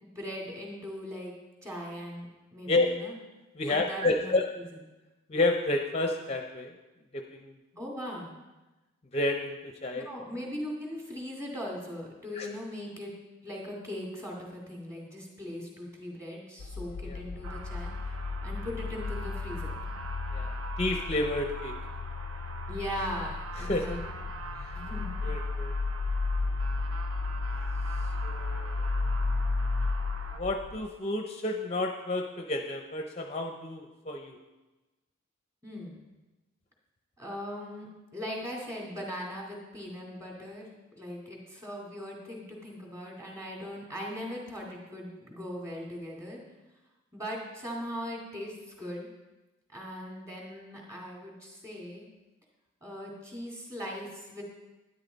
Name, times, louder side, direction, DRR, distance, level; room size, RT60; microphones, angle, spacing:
voice 1, 0.0-1.3 1.6-3.1 3.7-4.6 7.8-8.3 9.9-13.1 13.4-17.9 18.4-19.7 22.7-24.0 24.3-24.4 24.7-25.1 35.6-36.0 37.2-40.7 41.0-46.4 47.1-49.1 49.7-52.1 52.8-54.4, equal, 15° right, -2 dB, 2.4 m, -39 dB
voice 2, 3.6-4.4 5.3-6.7 7.1-7.5 9.1-10.1 12.4-12.5 17.1-17.2 20.3-21.7 23.7-24.0 25.2-25.7 28.2-28.8 30.4-34.4, left 2 dB, 30° left, 4 dB, 0.6 m, -30 dB
sound 1, 16.6-30.9, left 3 dB, 80° left, 0.4 m, -33 dB
sound 2, 17.4-30.4, right 4 dB, 85° right, 1.1 m, -44 dB
11.5 x 10.5 x 4.0 m, 1.1 s
head